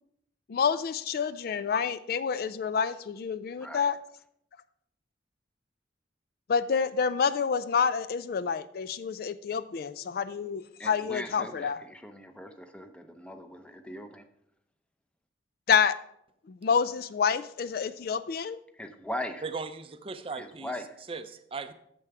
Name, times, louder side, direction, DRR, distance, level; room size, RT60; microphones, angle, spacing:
voice 1, 0.5-4.0 6.5-11.8 15.7-16.0 16.5-18.6, left 6 dB, 55° left, 15 dB, 0.3 m, -28 dB
voice 2, 3.5-3.9 10.8-14.2 18.7-19.4 20.3-21.0, left 1 dB, 5° left, 7 dB, 0.7 m, -40 dB
voice 3, 19.4-20.7 21.1-21.7, right 4 dB, 30° right, 11 dB, 0.5 m, -37 dB
8.9 x 6.9 x 4.8 m, 0.74 s
head